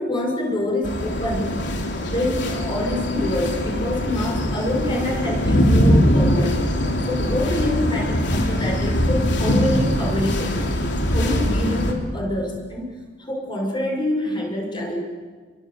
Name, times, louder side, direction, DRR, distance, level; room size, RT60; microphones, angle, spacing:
voice 1, 0.0-1.6 2.1-6.7 7.1-10.6 11.0-12.9 13.2-15.0, left 1 dB, 25° left, 0 dB, 6.8 m, -26 dB
sound 1, 0.8-11.9, equal, 65° left, 3.5 m, -22 dB
28.5 x 23.5 x 8.2 m, 1.4 s
head